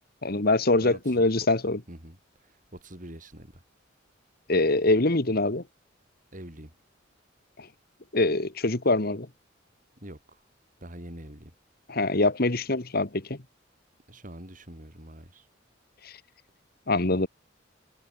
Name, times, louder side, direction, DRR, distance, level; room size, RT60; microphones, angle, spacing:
voice 1, 0.2-1.8 4.5-5.6 7.6-7.7 8.1-9.3 11.9-13.4 16.0-16.1 16.9-17.3, left 2 dB, 50° left, 1.7 m, -24 dB
voice 2, 0.8-1.3 1.9-2.2 2.7-3.5 6.3-6.7 10.0-10.2 10.8-11.5 14.1-15.5, right 1 dB, 40° right, 7.1 m, -44 dB
head